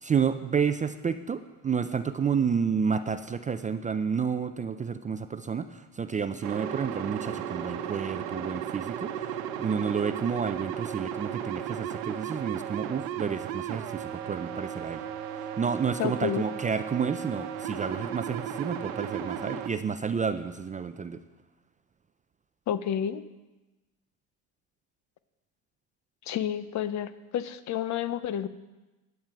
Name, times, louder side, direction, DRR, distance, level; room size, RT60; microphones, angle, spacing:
voice 1, 0.0-15.0 15.3-21.2, right 6 dB, 20° right, 10 dB, 0.4 m, -30 dB
sound 1, 6.4-19.7, right 9 dB, 90° right, 0.9 m, -35 dB
voice 2, 16.0-16.5 22.7-23.2 26.3-28.5, left 9 dB, 45° left, 14 dB, 0.7 m, -30 dB
12.0 x 9.4 x 4.7 m, 1.1 s
supercardioid pair, 95°, 39 cm